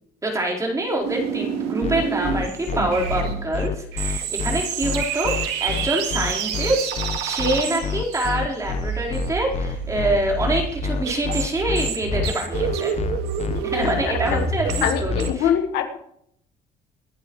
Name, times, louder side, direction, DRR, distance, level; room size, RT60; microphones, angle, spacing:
voice 1, 0.2-6.9 7.2-12.9 13.6-15.5, right 1 dB, 20° right, -2 dB, 4.5 m, -25 dB
sound 1, 1.0-15.3, right 6 dB, 90° right, 2.0 m, -28 dB
sound 2, 1.8-15.3, left 7 dB, 40° left, 0.8 m, -28 dB
voice 2, 14.8-16.0, left 9 dB, 85° left, 6 dB, 1.6 m, -23 dB
24.0 x 10.5 x 3.2 m, 0.70 s
cardioid pair, 110°, 17 cm